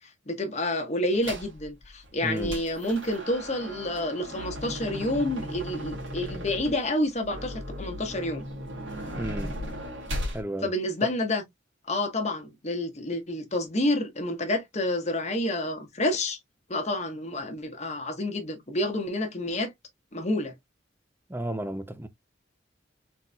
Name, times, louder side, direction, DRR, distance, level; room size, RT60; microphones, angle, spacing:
voice 1, 0.3-8.4 10.6-11.4 11.9-16.4 16.7-19.7 20.1-20.5, left 1 dB, 35° left, 1.1 m, -29 dB
sound 1, 1.2-1.6 2.0-10.4, equal, 90° right, 2.3 m, -36 dB
voice 2, 2.2-2.6 9.1-9.6 10.3-10.7 11.0-11.1 21.3-22.1, right 1 dB, 10° right, 0.5 m, -33 dB
4.1 x 4.0 x 2.2 m
head